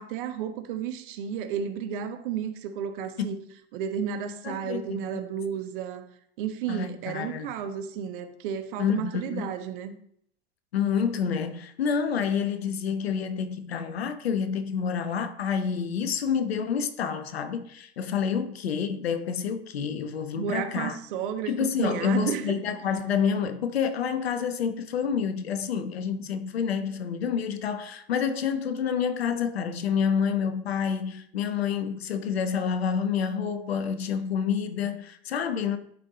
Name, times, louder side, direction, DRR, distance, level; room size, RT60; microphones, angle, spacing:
voice 1, 0.0-3.4 3.7-6.1 6.4-9.9 20.4-22.6, right 8 dB, 55° right, 1.3 m, -32 dB
voice 2, 4.4-5.1 6.7-7.5 8.8-9.5 10.7-21.0 21.5-35.8, left 7 dB, 70° left, 1.0 m, -28 dB
11.0 x 5.4 x 4.1 m
figure-of-eight pair, 90°, 32 cm